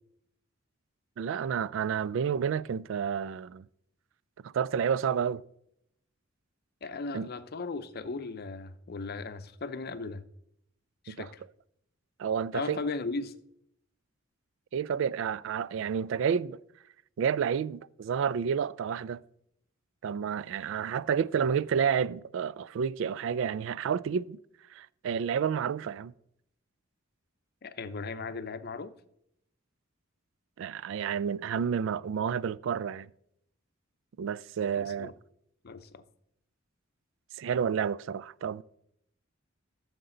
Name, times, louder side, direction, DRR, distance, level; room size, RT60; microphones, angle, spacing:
voice 1, 1.2-3.6 4.4-5.4 7.1-7.3 11.1-11.3 12.2-12.8 14.7-16.6 17.2-19.2 20.0-24.4 24.7-26.1 30.6-33.1 34.2-35.1 37.4-38.6, right 7 dB, 65° right, 0.3 m, -30 dB
voice 2, 6.8-10.2 11.0-11.4 12.5-13.4 27.6-28.9 34.8-35.1 35.6-36.0, left 3 dB, 50° left, 0.6 m, -37 dB
14.0 x 6.7 x 3.9 m
head